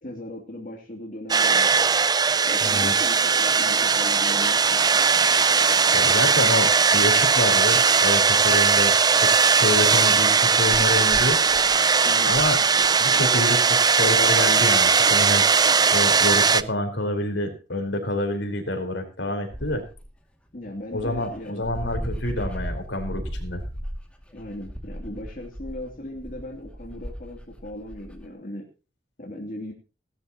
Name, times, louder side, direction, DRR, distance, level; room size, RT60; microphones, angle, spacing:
voice 1, 0.0-1.7 2.5-4.8 12.0-12.4 20.5-21.7 24.3-28.7 29.2-29.7, left 1 dB, 50° left, -1 dB, 3.0 m, -38 dB
sound 1, 1.3-16.6, right 5 dB, 20° right, 0.5 m, -19 dB
voice 2, 2.6-3.0 5.9-11.4 12.2-12.6 13.0-15.4 15.9-19.8 20.9-23.6, left 1 dB, 70° left, 4 dB, 4.5 m, -27 dB
Dog, 19.5-20.1 20.7-20.8 20.9-28.3, equal, 5° left, 2.4 m, -35 dB
17.5 x 13.5 x 3.0 m, 0.34 s
head